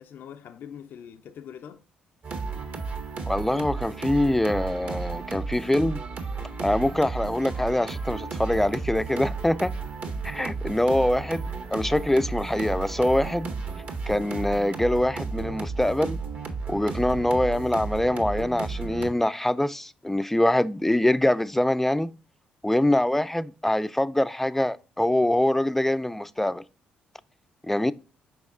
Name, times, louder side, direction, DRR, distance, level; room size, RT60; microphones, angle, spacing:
voice 1, 0.0-1.8, left 8 dB, 65° left, 0.5 m, -43 dB
sound 1, 2.2-19.1, right 4 dB, 55° right, 1.6 m, -33 dB
voice 2, 3.3-6.0 6.6-9.7 10.2-13.5 14.1-16.2 16.7-22.1 22.6-26.6 27.7-27.9, left 1 dB, 5° left, 0.4 m, -24 dB
6.0 x 4.7 x 3.6 m
supercardioid pair, 55°, 4 cm